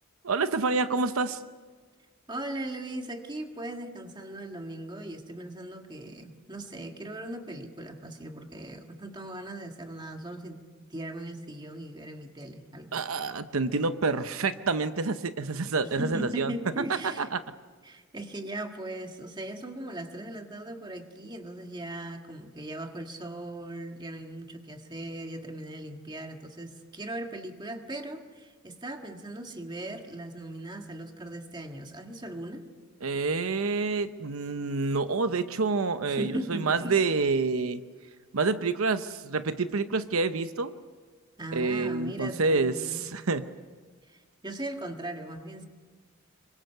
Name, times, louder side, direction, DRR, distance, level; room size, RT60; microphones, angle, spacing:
voice 1, 0.2-1.4 12.9-16.5 17.2-17.4 33.0-37.8 38.3-40.7 41.5-43.4, right 4 dB, 85° right, 11 dB, 0.8 m, -28 dB
voice 2, 2.3-10.6 10.9-13.0 15.8-17.3 17.8-32.7 36.1-37.0 41.4-43.0 44.1-45.7, right 1 dB, 20° right, 5 dB, 1.6 m, -38 dB
26.0 x 23.5 x 6.7 m, 1.5 s
head